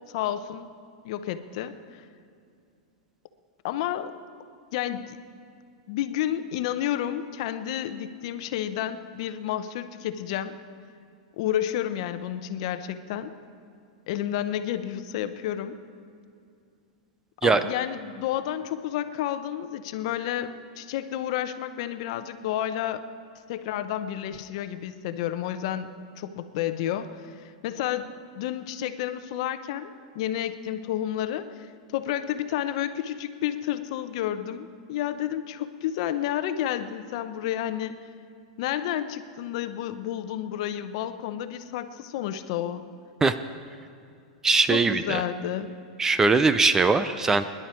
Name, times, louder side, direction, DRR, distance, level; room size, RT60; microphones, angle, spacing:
voice 1, 0.1-0.7 1.0-2.0 3.6-4.1 4.7-5.2 5.9-10.6 11.4-13.3 14.1-15.8 17.4-23.0 23.5-25.9 26.2-38.0 38.6-42.8 44.7-45.7, left 11 dB, 55° left, 10 dB, 0.8 m, -31 dB
voice 2, 44.4-45.2 46.0-47.4, right 4 dB, 10° right, 12 dB, 0.4 m, -21 dB
23.0 x 11.0 x 4.5 m, 2.4 s
supercardioid pair, 145°, 4 cm